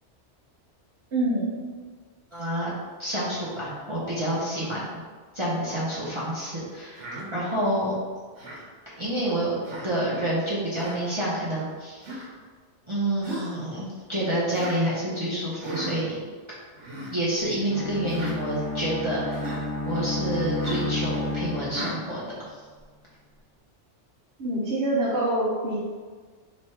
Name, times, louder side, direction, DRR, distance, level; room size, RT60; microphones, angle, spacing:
voice 1, 1.1-1.7 24.4-25.9, right 1 dB, 60° right, -6 dB, 1.0 m, -25 dB
voice 2, 2.3-2.7 3.0-5.0 5.3-7.9 9.0-9.5 9.8-12.2 12.9-16.2 17.1-19.6 19.8-22.2 22.5-22.6, right 1 dB, 30° right, -9 dB, 0.8 m, -28 dB
Human voice, 7.0-7.3 8.4-8.7 9.6-9.9 10.8-11.0 12.0-12.3 13.2-13.6 14.5-14.8 15.6-15.9 16.8-17.1 18.1-18.4 19.3-19.6 20.6-20.9 21.7-22.0, right 1 dB, 80° right, 1.3 m, -36 dB
Bowed string instrument, 17.7-22.1, left 1 dB, 15° left, 1.2 m, -31 dB
3.4 x 3.1 x 4.2 m, 1.5 s
omnidirectional pair, 1.2 m